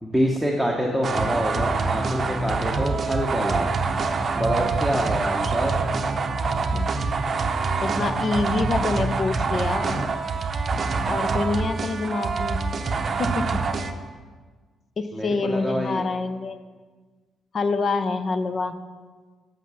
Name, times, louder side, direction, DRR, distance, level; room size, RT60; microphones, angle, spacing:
voice 1, 0.0-3.7 4.3-5.7 15.1-16.0, equal, ahead, 0 dB, 0.9 m, -26 dB
sound 1, 1.0-13.9, right 4 dB, 45° right, 0.6 m, -25 dB
voice 2, 7.8-10.1 11.0-12.6 13.2-13.6 15.0-16.6 17.5-18.8, left 3 dB, 45° left, 11 dB, 0.6 m, -26 dB
7.9 x 5.9 x 6.2 m, 1.4 s
cardioid pair, 90°, 0 cm